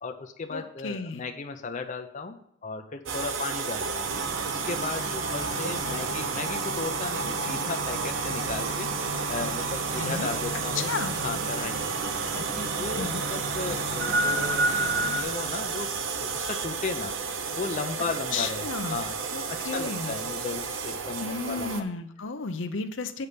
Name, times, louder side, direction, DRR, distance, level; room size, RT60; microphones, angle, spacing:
voice 1, 0.0-4.1 4.4-8.9 9.3-11.9 12.4-15.9 16.2-17.2 17.5-19.1 19.5-21.9, left 4 dB, 40° left, 5 dB, 0.5 m, -35 dB
voice 2, 0.5-1.2 10.0-10.3 10.8-11.2 13.0-13.2 18.3-19.0 19.3-20.2 21.2-23.3, left 4 dB, 75° left, 8 dB, 0.7 m, -33 dB
sound 1, 3.1-21.8, right 5 dB, 85° right, 0.8 m, -32 dB
sound 2, 4.0-15.2, right 1 dB, 60° right, 1.1 m, -33 dB
8.1 x 5.6 x 5.1 m, 0.74 s
head